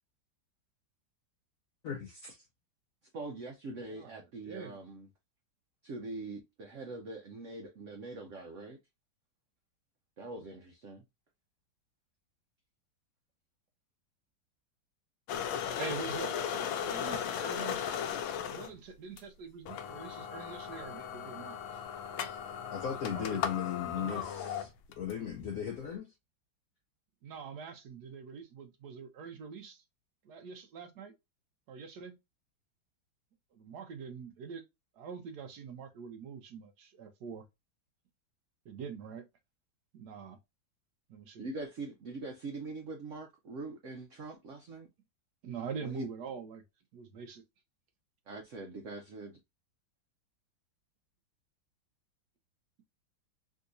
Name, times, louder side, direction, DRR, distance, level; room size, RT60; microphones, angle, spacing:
voice 1, 1.8-2.4 22.7-24.6 25.0-26.1, left 8 dB, 70° left, 0.8 m, -37 dB
voice 2, 3.1-5.1 5.8-8.8 10.2-11.0 41.4-44.9 45.8-46.1 48.3-49.4, right 3 dB, 85° right, 0.6 m, -43 dB
sound 1, 15.3-18.7 19.2-19.3 19.7-25.1, left 8 dB, 90° left, 1.3 m, -37 dB
voice 3, 15.8-18.0 18.5-21.8 23.0-23.4 23.9-24.3 27.2-29.8 30.2-31.1 31.7-32.2 33.5-34.6 34.9-37.4 38.6-39.3 39.9-40.4 41.1-41.4 45.4-46.6 46.9-47.4, right 6 dB, 70° right, 1.0 m, -44 dB
3.7 x 2.7 x 2.5 m
omnidirectional pair, 2.1 m